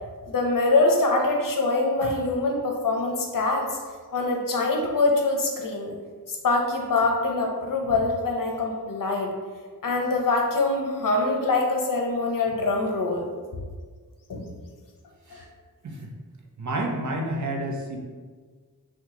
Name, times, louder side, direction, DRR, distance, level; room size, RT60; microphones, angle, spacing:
voice 1, 0.2-3.8 4.1-5.9 6.3-9.3 9.8-13.3 14.3-14.5 15.3-15.4, left 3 dB, 60° left, 1 dB, 0.7 m, -24 dB
voice 2, 16.6-18.0, right 1 dB, 50° right, 1 dB, 0.6 m, -30 dB
2.9 x 2.3 x 3.6 m, 1.5 s
cardioid pair, 50°, 37 cm